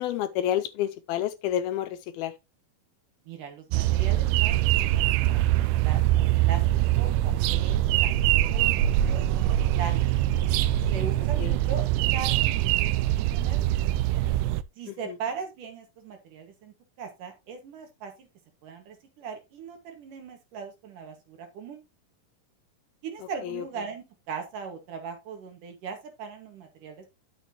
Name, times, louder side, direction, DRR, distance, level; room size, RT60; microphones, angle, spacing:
voice 1, 0.0-2.3 11.4-11.5 14.9-15.0 23.4-23.6, left 11 dB, 80° left, 2.4 m, -29 dB
voice 2, 3.3-5.5 5.8-6.6 7.0-10.1 10.9-13.8 14.8-18.3 18.6-21.8 23.0-27.1, right 6 dB, 60° right, 2.9 m, -39 dB
sound 1, 3.7-14.6, right 14 dB, 85° right, 2.6 m, -23 dB
11.5 x 6.7 x 2.9 m
omnidirectional pair, 4.7 m